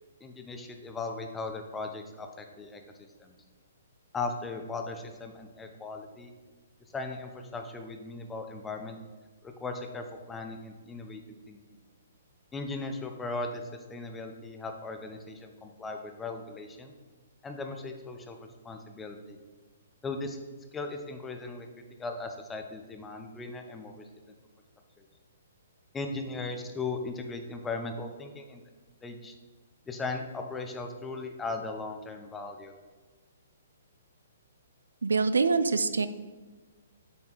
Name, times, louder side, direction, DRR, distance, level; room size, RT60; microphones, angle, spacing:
voice 1, 0.2-2.8 3.2-3.3 4.1-6.3 6.9-9.0 9.6-11.2 11.5-11.6 12.5-13.6 13.9-16.9 17.4-18.4 18.6-19.4 20.0-20.4 20.7-21.7 22.0-24.3 25.9-28.6 29.0-29.3 29.9-32.7, left 3 dB, 10° left, 4 dB, 0.7 m, -37 dB
voice 2, 35.0-36.1, right 4 dB, 80° right, 13 dB, 0.4 m, -25 dB
7.4 x 4.3 x 3.9 m, 1.4 s
hypercardioid pair, 130°, 0 cm